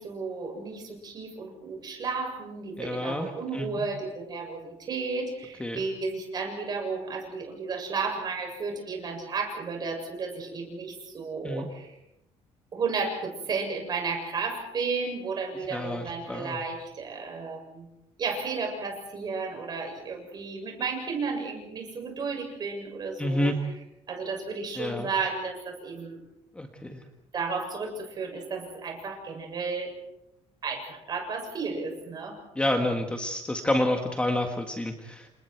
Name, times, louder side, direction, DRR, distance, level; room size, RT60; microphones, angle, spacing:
voice 1, 0.0-11.9 12.7-17.9 18.2-23.5 24.1-26.2 27.3-29.9 30.6-32.4, right 4 dB, 35° right, 2 dB, 7.2 m, -33 dB
voice 2, 2.8-3.8 5.6-5.8 11.4-11.7 15.7-16.6 23.2-23.6 24.8-25.1 26.5-27.0 32.5-35.3, left 1 dB, 10° left, 4 dB, 1.7 m, -29 dB
30.0 x 27.5 x 4.7 m, 0.85 s
cardioid pair, 165°, 12 cm